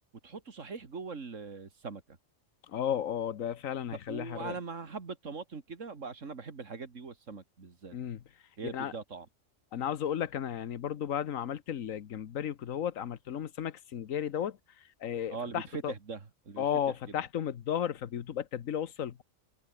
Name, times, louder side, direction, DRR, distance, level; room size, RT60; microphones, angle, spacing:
voice 1, 0.2-2.2 3.9-8.0 8.6-9.3 15.3-17.2, right 4 dB, 70° right, 2.5 m, -41 dB
voice 2, 2.7-4.6 7.9-8.2 8.6-8.9 9.7-14.6 15.0-15.9 16.6-19.2, left 9 dB, 90° left, 1.4 m, -34 dB
omnidirectional pair, 1.3 m